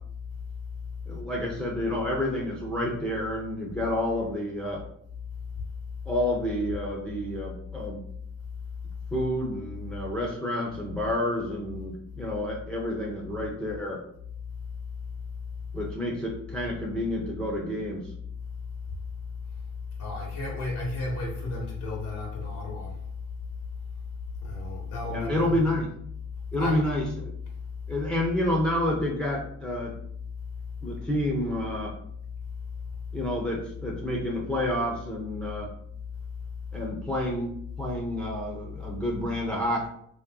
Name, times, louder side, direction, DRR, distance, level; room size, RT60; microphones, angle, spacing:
voice 1, 1.1-4.8 6.1-8.0 9.1-14.0 15.7-18.1 25.1-25.9 26.5-27.3 27.9-29.9 30.8-31.9 33.1-35.7 36.7-39.9, left 1 dB, 5° left, 0.8 m, -29 dB
voice 2, 20.0-23.0 24.4-25.6 26.6-26.8, left 2 dB, 75° left, 1.3 m, -33 dB
3.1 x 3.0 x 3.7 m
cardioid pair, 90°, 30 cm